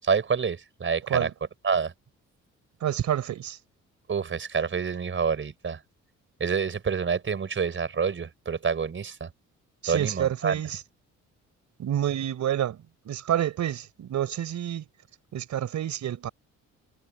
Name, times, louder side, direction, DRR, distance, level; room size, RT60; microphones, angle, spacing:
voice 1, 0.0-1.3 1.6-1.9 4.1-5.8 6.4-9.3 9.9-10.6, right 6 dB, 40° right, 5.3 m, -27 dB
voice 2, 2.8-3.6 9.8-10.8 11.8-14.9 15.3-16.3, right 10 dB, 70° right, 4.1 m, -28 dB
cardioid pair, 90°, 30 cm